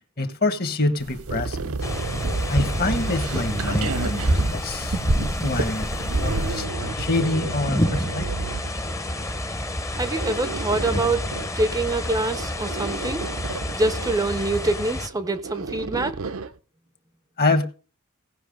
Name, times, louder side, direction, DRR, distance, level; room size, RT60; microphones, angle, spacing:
voice 1, 0.2-1.8 2.5-5.0 5.4-8.3 17.4-17.7, left 2 dB, 45° left, 1.3 m, -26 dB
sound 1, 1.0-6.6, right 1 dB, 85° right, 1.3 m, -27 dB
sound 2, 1.3-4.5 5.8-9.3 10.0-11.6 12.3-14.2 14.5-14.6 14.9-16.5, right 4 dB, 65° right, 0.6 m, -32 dB
sound 3, 1.8-15.1, left 1 dB, 15° left, 0.7 m, -30 dB
voice 2, 9.9-11.2 11.5-13.3 13.7-16.2, right 2 dB, 15° right, 0.5 m, -25 dB
17.5 x 5.8 x 5.2 m
head